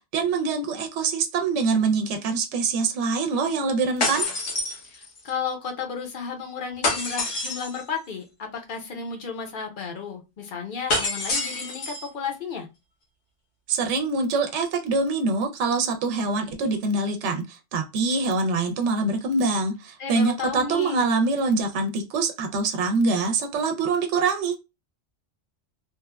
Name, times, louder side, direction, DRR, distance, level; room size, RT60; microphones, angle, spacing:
voice 1, 0.0-4.3 13.7-24.6, right 4 dB, 75° right, 5 dB, 0.9 m, -24 dB
sound 1, 4.0-5.3 6.8-7.8 10.9-12.1, left 2 dB, 75° left, 1.2 m, -27 dB
voice 2, 4.8-12.7 20.0-21.1, left 6 dB, 55° left, 3 dB, 0.7 m, -33 dB
3.0 x 2.1 x 2.2 m, 0.25 s
omnidirectional pair, 1.2 m